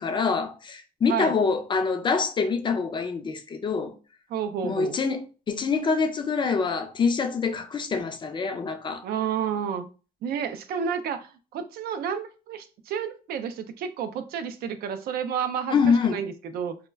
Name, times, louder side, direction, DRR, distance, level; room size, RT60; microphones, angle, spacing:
voice 1, 0.0-3.9 4.6-9.0 15.7-16.2, left 5 dB, 30° left, 0.4 m, -25 dB
voice 2, 4.3-5.0 9.0-9.9 10.2-16.8, right 7 dB, 65° right, 0.4 m, -30 dB
2.2 x 2.1 x 3.2 m
cardioid pair, 110°, 17 cm